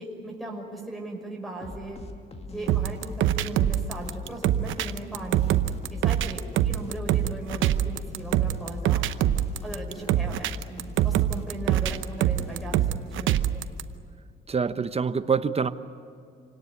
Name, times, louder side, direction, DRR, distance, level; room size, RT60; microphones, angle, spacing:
voice 1, 0.0-2.0 2.5-5.6 5.9-9.0 9.6-12.7 13.2-13.6, right 2 dB, ahead, 5.7 m, -38 dB
sound 1, 1.6-13.2, left 3 dB, 30° left, 2.2 m, -42 dB
sound 2, 2.7-13.8, right 11 dB, 80° right, 0.9 m, -25 dB
voice 2, 14.5-15.7, right 5 dB, 30° right, 1.0 m, -25 dB
27.5 x 18.0 x 9.7 m
cardioid pair, 90°, 20 cm